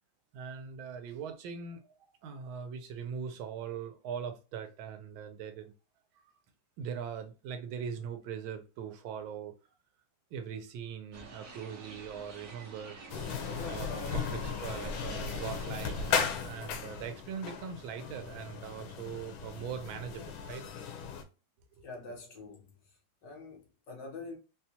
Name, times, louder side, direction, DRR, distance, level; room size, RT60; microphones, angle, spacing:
voice 1, 0.3-1.9 2.2-5.7 6.1-6.2 6.8-9.5 10.3-13.0 13.7-20.7 21.8-21.9, right 7 dB, 85° right, 1.4 m, -41 dB
sound 1, 11.1-16.3, right 3 dB, 55° right, 1.0 m, -49 dB
sound 2, 13.1-21.2, left 6 dB, 90° left, 1.4 m, -36 dB
voice 2, 21.8-23.0 23.2-24.4, left 3 dB, 65° left, 1.6 m, -46 dB
4.2 x 2.3 x 2.7 m
omnidirectional pair, 2.2 m